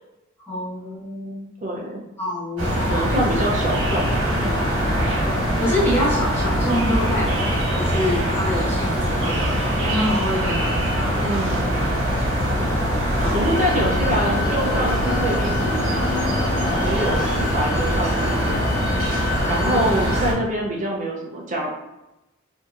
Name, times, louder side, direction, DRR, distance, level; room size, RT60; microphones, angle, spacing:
voice 1, 0.5-1.4 2.2-3.2 4.9-7.5 7.8-11.5 13.2-13.6 16.6-16.8 19.5-19.9, left 1 dB, 10° left, -9 dB, 1.3 m, -27 dB
voice 2, 1.6-2.0 2.9-4.7 11.2-11.9 13.3-16.2 16.8-18.6 19.5-21.7, right 1 dB, 40° right, -2 dB, 0.6 m, -26 dB
sound 1, 2.6-20.3, equal, 80° right, 1.3 m, -22 dB
sound 2, 13.5-20.2, left 6 dB, 90° left, 0.4 m, -31 dB
3.6 x 2.7 x 2.5 m, 0.96 s
head